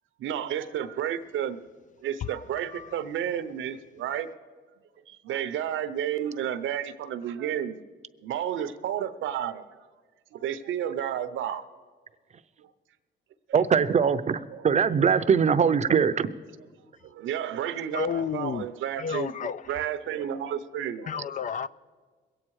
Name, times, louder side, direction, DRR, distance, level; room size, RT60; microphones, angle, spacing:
voice 1, 0.2-1.6 2.0-4.3 5.1-7.8 8.2-9.6 10.3-11.6 12.6-12.7 14.5-14.7 17.0-21.1, right 10 dB, 80° right, 0.8 m, -31 dB
voice 2, 13.5-16.3, right 6 dB, 35° right, 0.6 m, -22 dB
voice 3, 17.9-18.7 19.0-19.8 21.1-21.7, left 7 dB, 40° left, 0.4 m, -31 dB
22.0 x 8.7 x 4.7 m
cardioid pair, 90°, 20 cm